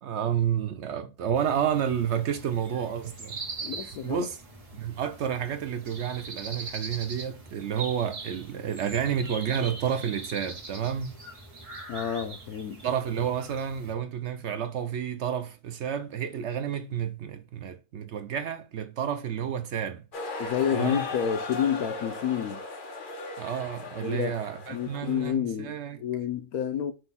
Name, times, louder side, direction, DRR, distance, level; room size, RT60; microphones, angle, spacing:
voice 1, 0.0-4.4 4.7-11.2 12.8-20.0 20.7-21.0 23.4-26.0, right 8 dB, 65° right, 0.7 m, -30 dB
sound 1, 1.3-13.9, right 3 dB, 30° right, 1.0 m, -42 dB
voice 2, 3.6-4.3 11.9-12.8 20.4-22.6 24.0-24.3 24.7-26.9, left 9 dB, 75° left, 1.1 m, -29 dB
sound 2, 20.1-25.3, left 3 dB, 45° left, 0.8 m, -37 dB
5.3 x 2.2 x 3.9 m
omnidirectional pair, 1.6 m